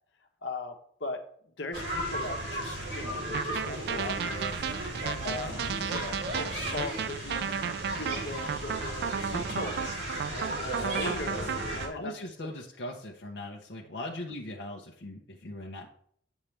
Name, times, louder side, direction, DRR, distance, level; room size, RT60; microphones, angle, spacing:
voice 1, 0.4-7.6 7.9-12.1 14.0-14.1, left 2 dB, 80° left, 4 dB, 1.1 m, -39 dB
sound 1, 1.7-11.9, right 1 dB, 80° right, 2.7 m, -35 dB
sound 2, 3.3-11.9, right 7 dB, 60° right, 0.3 m, -34 dB
voice 2, 11.9-15.9, left 1 dB, 65° left, -1 dB, 0.8 m, -39 dB
8.6 x 7.3 x 3.3 m, 0.64 s
head